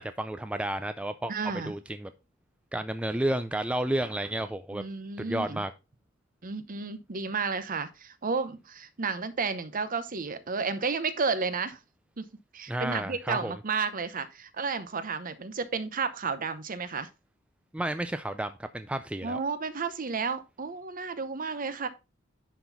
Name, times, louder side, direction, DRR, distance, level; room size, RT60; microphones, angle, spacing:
voice 1, 0.0-1.3 1.6-2.1 2.7-4.8 5.2-5.7 12.7-13.5 17.7-19.4, right 1 dB, 5° right, 0.3 m, -31 dB
voice 2, 1.3-1.7 4.7-5.6 6.4-11.8 12.2-12.3 12.5-17.1 19.2-21.9, right 4 dB, 45° right, 0.8 m, -32 dB
10.5 x 4.0 x 4.0 m
head